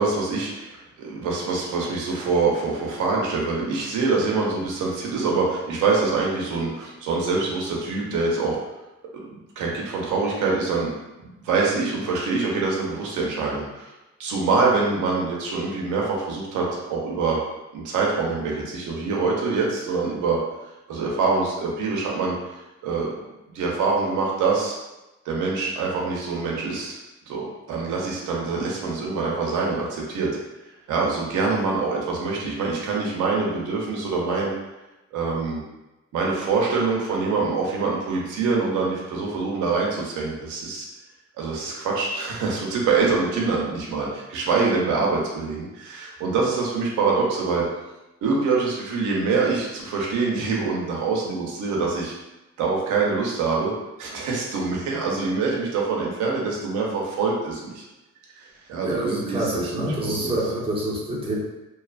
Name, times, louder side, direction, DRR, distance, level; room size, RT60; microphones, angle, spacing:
voice 1, 0.0-8.6 9.1-10.9 11.2-13.9 14.2-17.4 17.7-20.4 20.9-22.3 22.8-23.1 23.5-24.8 25.2-27.0 27.3-30.3 30.9-34.5 35.1-35.6 36.1-40.9 41.4-47.6 48.2-52.1 52.6-53.7 54.0-57.8 58.4-60.4, right 4 dB, 90° right, -3 dB, 0.7 m, -25 dB
voice 2, 58.8-61.4, right 1 dB, 20° right, -5 dB, 0.8 m, -27 dB
2.7 x 2.4 x 2.3 m, 1.0 s
cardioid pair, 90°, 30 cm